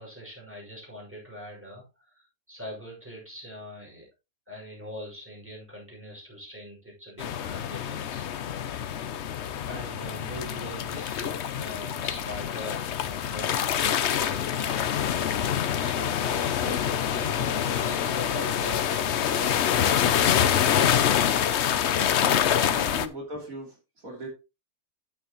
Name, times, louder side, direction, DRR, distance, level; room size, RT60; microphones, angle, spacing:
voice 1, 0.0-4.1 4.5-8.3 9.7-14.9 15.8-20.8, equal, 10° right, -3 dB, 5.9 m, -42 dB
sound 1, 7.2-23.1, left 9 dB, 60° left, 0.9 m, -26 dB
voice 2, 22.7-23.8 24.0-24.3, right 1 dB, 70° right, 0 dB, 3.7 m, -38 dB
10.0 x 8.7 x 3.0 m, 0.27 s
omnidirectional pair, 1.5 m